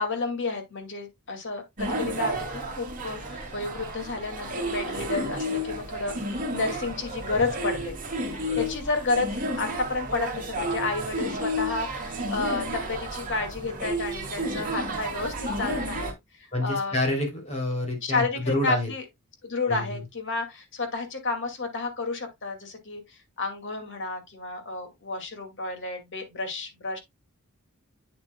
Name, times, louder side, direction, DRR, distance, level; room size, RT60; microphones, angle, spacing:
voice 1, 0.0-8.0 8.3-9.3 9.6-16.1 16.4-17.0 18.0-19.0 19.4-27.0, left 3 dB, 55° left, 2.3 m, -31 dB
sound 1, 1.8-16.1, right 1 dB, 40° right, 2.5 m, -32 dB
voice 2, 16.5-18.9 19.7-19.8, left 1 dB, 30° left, 3.1 m, -28 dB
8.6 x 7.5 x 2.3 m
head